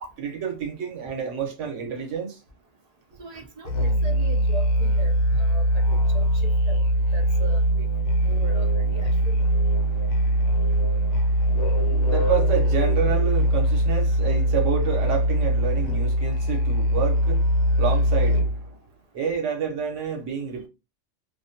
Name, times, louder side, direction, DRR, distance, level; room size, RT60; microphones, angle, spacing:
voice 1, 0.2-2.4 8.2-8.5 9.1-9.3 9.8-18.8 19.1-20.7, right 7 dB, 85° right, 1.1 m, -30 dB
voice 2, 3.2-6.8 7.1-7.6 8.2-9.3, right 2 dB, 55° right, 0.4 m, -39 dB
Musical instrument, 3.6-18.7, equal, 75° left, 0.9 m, -22 dB
2.5 x 2.1 x 2.6 m
omnidirectional pair, 1.2 m